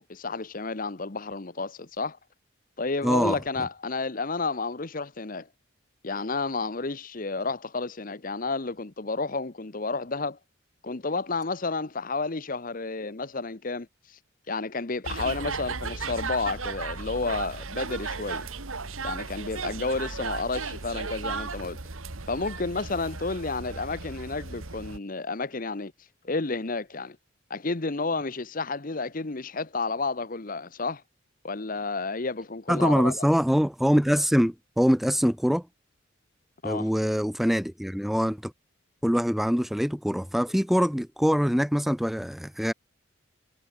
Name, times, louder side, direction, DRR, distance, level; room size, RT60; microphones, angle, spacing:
voice 1, 0.0-2.2 2.8-5.5 6.0-10.4 10.8-13.9 14.5-18.5 19.0-21.8 22.3-25.9 26.2-27.2 27.5-31.0 31.4-33.3 36.6-36.9, left 3 dB, 40° left, 0.9 m, -31 dB
voice 2, 3.0-3.4 32.7-35.7 36.6-38.5 39.0-42.7, equal, ahead, 0.4 m, -24 dB
sound 1, 15.0-25.0, right 4 dB, 85° right, 1.8 m, -35 dB
head